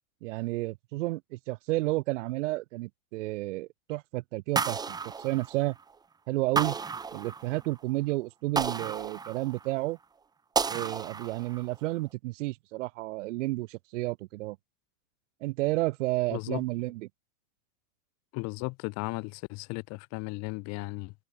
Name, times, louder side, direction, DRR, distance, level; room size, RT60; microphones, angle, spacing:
voice 1, 0.2-5.8 6.3-6.8 7.1-10.0 10.7-14.6 15.4-17.1, right 20 dB, 60° right, 1.6 m, -31 dB
sound 1, 4.6-5.9 6.6-7.7 8.6-9.8 10.6-11.7, right 5 dB, 10° right, 0.8 m, -32 dB
voice 2, 16.3-16.6 18.3-21.1, left 27 dB, 40° left, 1.3 m, -35 dB
hypercardioid pair, 130°, 41 cm